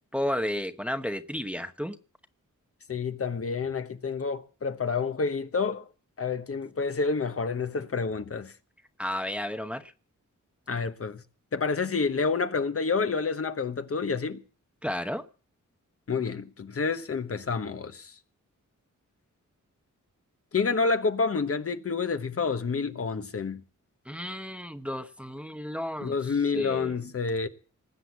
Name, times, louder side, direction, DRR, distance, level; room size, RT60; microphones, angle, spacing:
voice 1, 0.1-2.0 9.0-9.9 14.8-15.2 24.1-27.0, equal, 5° right, 0.9 m, -33 dB
voice 2, 2.9-5.9 6.2-8.5 10.7-11.2 11.5-14.4 16.1-18.1 20.5-23.6 26.0-27.5, left 4 dB, 45° left, 1.1 m, -28 dB
19.5 x 7.8 x 8.2 m
wide cardioid pair, 140°, 31 cm